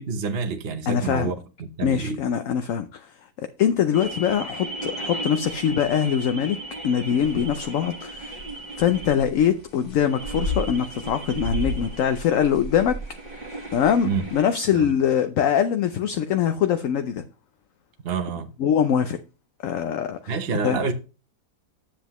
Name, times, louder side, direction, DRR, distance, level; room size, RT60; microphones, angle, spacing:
voice 1, 0.0-2.2 14.0-14.3 14.7-14.9 18.0-18.5 20.3-20.9, right 5 dB, 45° right, 0.9 m, -28 dB
voice 2, 0.9-1.3 1.8-6.6 6.8-8.4 8.8-13.0 13.7-17.2 18.6-19.2 19.6-20.3 20.6-20.8, left 8 dB, 65° left, 0.9 m, -23 dB
sound 1, 3.9-14.5, right 2 dB, 25° right, 1.6 m, -37 dB
sound 2, 7.2-7.7 8.2-9.5 9.8-14.3, equal, 30° left, 1.5 m, -33 dB
10.0 x 7.7 x 3.0 m
omnidirectional pair, 1.7 m